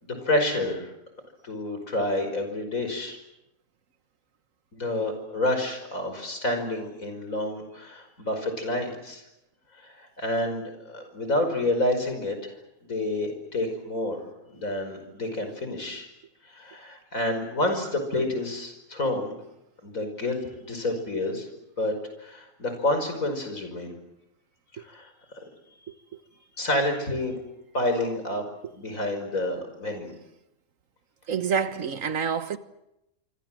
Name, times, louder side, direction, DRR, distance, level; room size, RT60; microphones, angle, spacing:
voice 1, 0.0-0.9 1.4-3.2 4.7-9.2 9.7-12.6 12.8-16.1 16.4-19.3 19.8-21.5 21.8-21.9 22.2-23.9 24.7-25.1 26.6-27.4 27.7-30.1, left 1 dB, 85° left, 5.8 m, -29 dB
voice 2, 31.3-32.6, right 6 dB, 75° right, 1.7 m, -27 dB
26.5 x 25.5 x 7.7 m
omnidirectional pair, 1.4 m